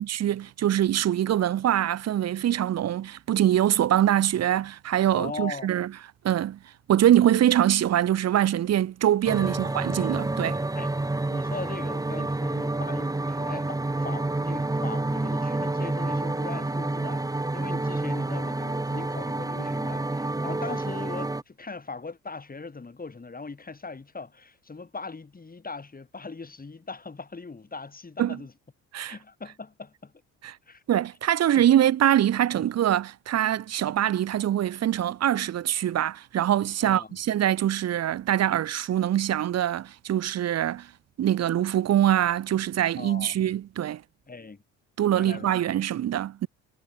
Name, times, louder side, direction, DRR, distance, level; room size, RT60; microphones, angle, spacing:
voice 1, 0.0-5.9 6.2-6.6 6.9-10.6 28.2-28.4 28.9-29.2 30.4-30.6 30.9-40.9 41.2-44.0 45.0-46.5, right 11 dB, 40° right, 1.0 m, -24 dB
voice 2, 5.1-5.7 9.4-9.5 10.8-10.9 11.3-28.5 29.1-30.1 30.7-30.8 31.5-31.7 32.5-32.7 36.8-37.2 43.0-43.4 44.3-44.6 45.1-45.5, left 4 dB, 25° left, 4.2 m, -40 dB
sound 1, 9.3-21.4, right 2 dB, 10° right, 1.4 m, -29 dB
hypercardioid pair, 55°, 38 cm